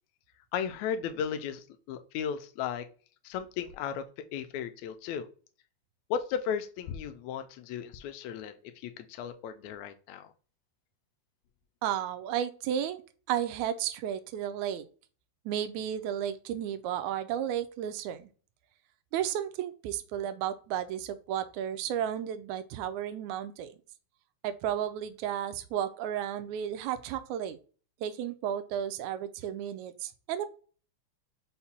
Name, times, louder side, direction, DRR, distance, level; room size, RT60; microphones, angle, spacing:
voice 1, 0.5-2.9 3.2-5.3 6.1-10.3, left 8 dB, 80° left, 8 dB, 1.7 m, -35 dB
voice 2, 11.8-13.0 13.3-14.8 15.4-18.3 19.1-23.7 24.4-27.6 28.0-30.5, right 10 dB, 80° right, 10 dB, 1.8 m, -33 dB
5.6 x 2.2 x 4.1 m, 0.39 s
omnidirectional pair, 3.4 m